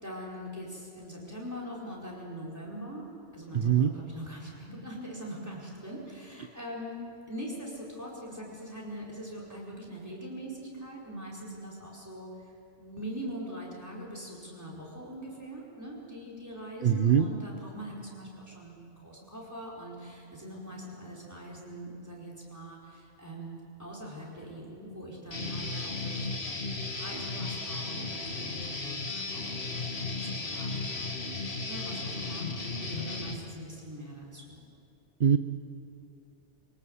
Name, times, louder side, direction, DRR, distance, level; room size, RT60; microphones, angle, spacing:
voice 1, 0.0-3.1 3.3-12.5 12.8-31.3 31.6-34.6, equal, 15° right, -3 dB, 4.9 m, -42 dB
voice 2, 3.5-3.9 16.8-17.3 35.2-35.4, right 8 dB, 50° right, 9 dB, 0.8 m, -22 dB
Guitar, 25.3-33.3, left 3 dB, 60° left, 2.3 m, -35 dB
25.0 x 18.5 x 8.0 m, 2.7 s
omnidirectional pair, 1.2 m